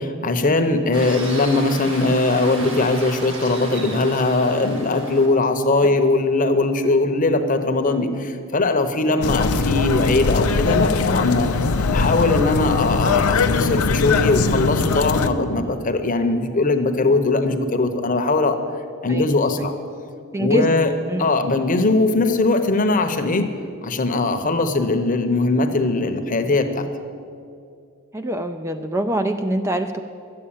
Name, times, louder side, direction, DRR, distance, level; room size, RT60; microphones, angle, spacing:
voice 1, 0.0-11.5 11.9-18.6 19.0-19.8 20.4-20.9 21.2-23.5 23.8-26.9, left 2 dB, 40° left, 7 dB, 0.9 m, -20 dB
sound 1, 0.9-5.3, right 2 dB, 60° right, 2.4 m, -34 dB
sound 2, 9.2-15.3, left 4 dB, 90° left, 0.6 m, -20 dB
voice 2, 20.3-20.7 21.1-21.3 28.1-30.0, equal, 10° right, 7 dB, 0.4 m, -24 dB
12.0 x 8.6 x 8.8 m, 2.4 s
head